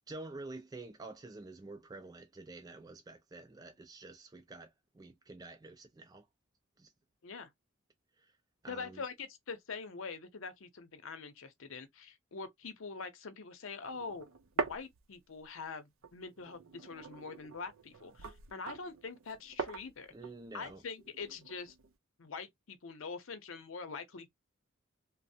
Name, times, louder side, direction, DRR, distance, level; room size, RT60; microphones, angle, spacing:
voice 1, 0.0-6.2 6.8-6.9 8.6-9.0 20.1-20.8, right 2 dB, 20° right, 0.4 m, -48 dB
voice 2, 8.7-14.3 14.6-20.1 20.5-21.7 22.2-24.3, left 4 dB, 75° left, 0.7 m, -44 dB
sound 1, 13.8-15.6 16.0-21.9, right 4 dB, 85° right, 0.5 m, -43 dB
3.1 x 2.0 x 2.6 m
head